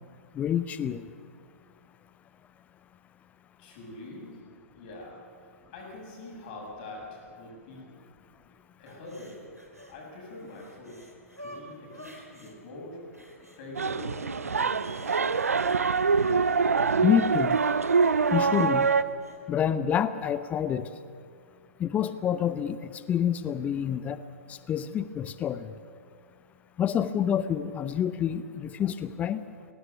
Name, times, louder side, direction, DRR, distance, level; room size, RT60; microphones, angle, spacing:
voice 1, 0.3-1.0 17.0-17.6 18.3-18.9 19.5-20.9 21.8-24.2 24.5-25.7 26.8-29.4, left 9 dB, 20° left, 14 dB, 0.6 m, -27 dB
voice 2, 3.6-4.4 4.7-5.2 5.7-8.0 8.8-9.5 9.9-11.1 11.4-13.1 13.6-15.5, left 2 dB, 40° left, -1 dB, 7.4 m, -44 dB
sound 1, 8.9-10.0 10.3-12.6 13.1-14.0 14.4-16.4 17.4-19.4 19.9-20.0, equal, 90° right, 3.5 m, -50 dB
short walk in medina marrakesh, 13.7-19.0, right 5 dB, 70° right, 0.7 m, -24 dB
23.0 x 18.0 x 6.9 m, 2.3 s
figure-of-eight pair, 110°, 8 cm